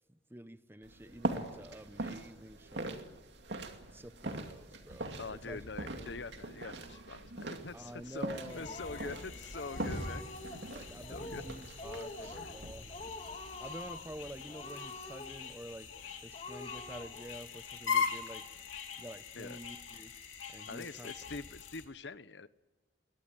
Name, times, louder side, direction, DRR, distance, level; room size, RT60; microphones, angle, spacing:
voice 1, 0.1-3.0 3.9-5.7 6.0-6.2 7.7-9.0 10.7-13.1 13.6-15.9 16.2-18.5 19.0-20.2 20.5-21.1, right 1 dB, 10° right, 12 dB, 0.9 m, -48 dB
sound 1, 0.8-14.9, right 2 dB, 60° right, 2.6 m, -43 dB
voice 2, 5.2-10.2 10.5-10.6 11.1-11.4 12.3-12.5 19.3-19.6 20.7-22.5, left 3 dB, 65° left, 15 dB, 0.9 m, -44 dB
sound 2, 8.3-21.9, left 6 dB, 85° left, 3.3 m, -42 dB
Speech, 8.3-9.2 9.5-10.7 11.0-11.5 11.8-12.6 12.9-14.1 14.5-15.6 15.9-16.0 16.3-17.3, left 2 dB, 30° left, 3.3 m, -46 dB
23.0 x 19.0 x 9.2 m, 1.1 s
head